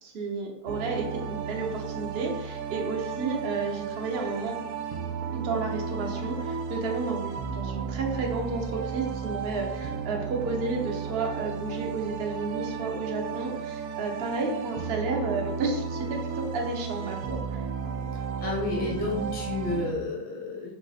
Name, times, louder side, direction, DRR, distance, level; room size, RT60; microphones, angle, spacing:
voice 1, 0.0-4.6 5.3-17.6, right 3 dB, 55° right, 0 dB, 0.7 m, -32 dB
sound 1, 0.7-19.9, right 6 dB, 80° right, 1.1 m, -34 dB
voice 2, 18.4-20.7, left 2 dB, 10° left, -2 dB, 0.5 m, -30 dB
4.0 x 2.5 x 4.0 m, 0.86 s
omnidirectional pair, 1.7 m